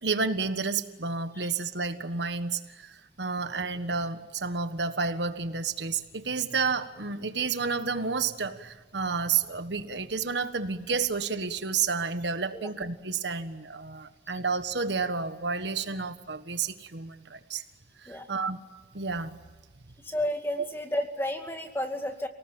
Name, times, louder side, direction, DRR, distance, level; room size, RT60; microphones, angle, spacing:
voice 1, 0.0-2.9 3.2-17.6 18.0-18.6 18.9-19.4 20.6-20.7, right 5 dB, 70° right, 9 dB, 1.5 m, -30 dB
voice 2, 20.0-22.3, left 1 dB, 15° left, 5 dB, 2.3 m, -32 dB
29.5 x 19.0 x 8.9 m, 1.3 s
head